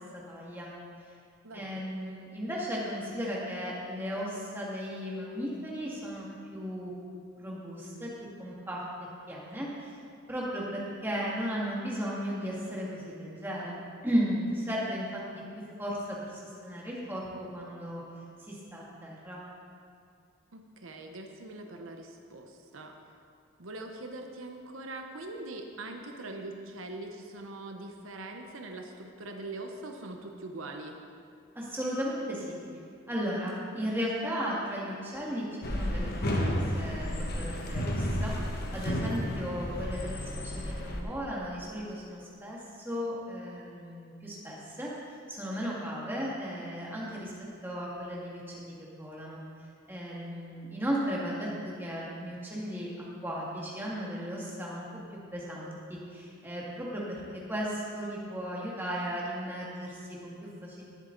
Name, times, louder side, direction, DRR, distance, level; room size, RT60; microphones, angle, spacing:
voice 1, 0.1-0.7 1.5-6.9 7.4-8.1 8.4-8.8 9.3-10.0 10.3-15.2 15.6-18.0 18.4-19.4 31.6-32.6 33.1-38.3 38.7-42.6 42.8-44.9 45.3-47.3 47.6-49.4 49.9-54.9 55.3-57.2 57.5-60.8, equal, 10° right, -5 dB, 1.9 m, -35 dB
voice 2, 1.4-1.8 20.5-22.9 23.6-31.0, right 2 dB, 70° right, 3 dB, 0.9 m, -42 dB
sound 1, 35.6-41.0, equal, 45° left, 1.2 m, -32 dB
19.0 x 7.6 x 3.9 m, 2.4 s
head